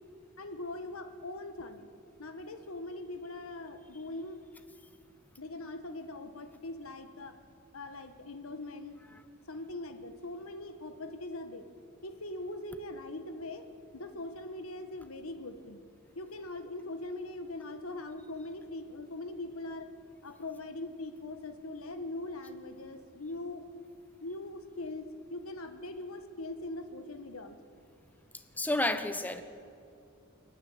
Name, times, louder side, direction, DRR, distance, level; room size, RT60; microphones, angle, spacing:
voice 1, 0.4-1.9 2.2-4.4 5.4-7.4 7.7-9.2 9.5-11.7 12.0-13.7 13.9-15.8 16.1-19.9 20.2-23.6 24.2-27.6, left 2 dB, 90° left, 8 dB, 1.5 m, -41 dB
voice 2, 28.6-29.4, left 1 dB, 10° left, 9 dB, 1.1 m, -30 dB
29.0 x 9.9 x 9.6 m, 2.5 s
head